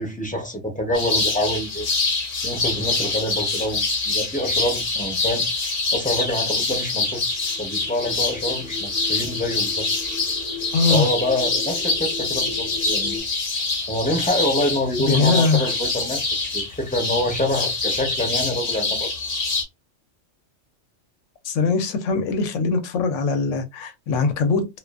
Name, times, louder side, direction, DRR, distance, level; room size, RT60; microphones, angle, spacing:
voice 1, 0.0-1.9 2.4-5.4 5.9-7.2 7.6-9.9 10.9-13.3 13.9-19.1, left 1 dB, 10° left, 0.5 m, -26 dB
sound 1, 0.9-19.6, left 3 dB, 50° left, 0.8 m, -25 dB
sound 2, 7.3-13.2, left 3 dB, 55° right, 0.7 m, -38 dB
voice 2, 10.7-11.1 15.1-15.7 21.4-24.7, left 4 dB, 85° left, 1.0 m, -21 dB
2.4 x 2.4 x 2.3 m
omnidirectional pair, 1.3 m